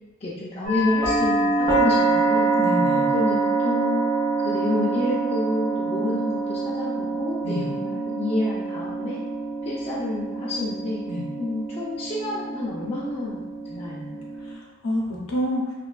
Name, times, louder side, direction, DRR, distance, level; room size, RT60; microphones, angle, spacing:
voice 1, 0.2-2.5 3.1-4.0 4.4-9.2 9.6-11.0 11.4-13.4 13.7-14.3, left 2 dB, 30° left, -7 dB, 0.4 m, -29 dB
sound 1, 0.6-14.5, right 3 dB, 75° right, 1.2 m, -25 dB
voice 2, 2.6-3.1 7.4-7.7 11.1-11.3 14.4-15.7, equal, 80° left, -2 dB, 0.6 m, -28 dB
3.1 x 2.2 x 2.3 m, 1.1 s
head